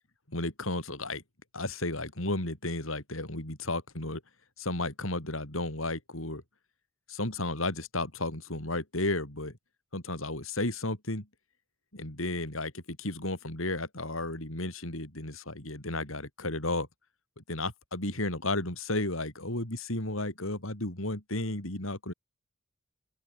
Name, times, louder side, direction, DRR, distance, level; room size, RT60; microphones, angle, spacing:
voice 1, 0.3-1.2 1.5-4.2 4.6-6.4 7.1-9.5 9.9-11.3 11.9-16.9 17.4-22.1, left 2 dB, 75° left, 6.1 m, -33 dB
open air
head